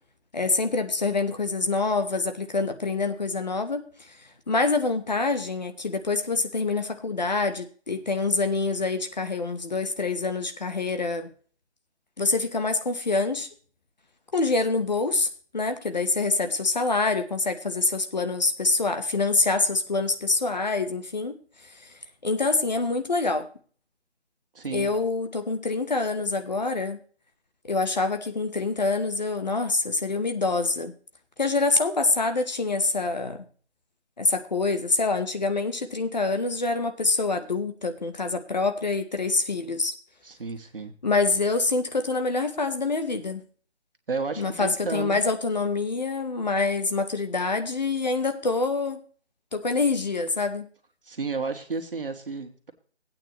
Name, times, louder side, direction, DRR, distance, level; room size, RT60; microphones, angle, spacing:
voice 1, 0.3-4.2 4.5-11.3 12.2-13.5 14.3-15.3 15.5-21.4 21.8-21.9 22.2-23.5 24.7-27.0 27.6-30.9 31.4-33.5 34.2-39.9 41.0-43.4 44.4-49.0 49.5-50.7, left 3 dB, 40° left, 8 dB, 0.9 m, -26 dB
voice 2, 24.5-25.0 40.2-40.9 44.1-45.2 51.0-52.7, right 4 dB, 55° right, 6 dB, 1.7 m, -32 dB
15.0 x 8.9 x 3.0 m, 0.43 s
figure-of-eight pair, 165°, 33 cm